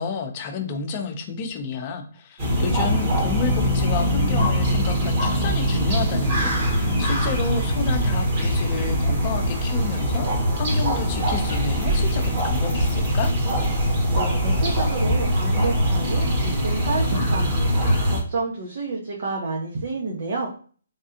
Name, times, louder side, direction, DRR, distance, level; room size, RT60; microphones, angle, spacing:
voice 1, 0.0-13.3, left 5 dB, 30° left, 4 dB, 0.7 m, -30 dB
sound 1, 2.4-18.2, equal, 40° right, 1.2 m, -22 dB
voice 2, 14.1-20.5, right 3 dB, 55° right, -2 dB, 0.9 m, -29 dB
3.4 x 2.3 x 2.8 m, 0.43 s
hypercardioid pair, 150°, 0 cm